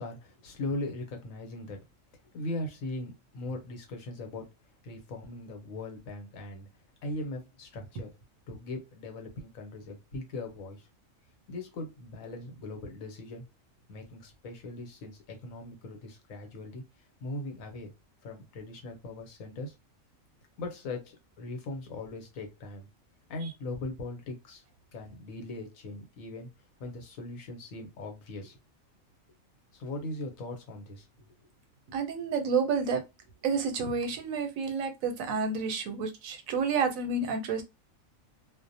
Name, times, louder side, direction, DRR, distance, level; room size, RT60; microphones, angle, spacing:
voice 1, 0.0-1.8 2.3-4.5 4.8-6.7 7.0-8.1 8.5-10.9 11.5-13.4 13.9-16.8 17.2-17.9 18.2-19.7 20.6-22.9 23.3-24.6 24.9-26.5 26.8-28.6 29.7-31.5, left 2 dB, 80° left, 1.2 m, -39 dB
voice 2, 31.9-33.0 33.4-37.6, right 5 dB, 85° right, 1.0 m, -30 dB
2.4 x 2.0 x 2.6 m
omnidirectional pair, 1.4 m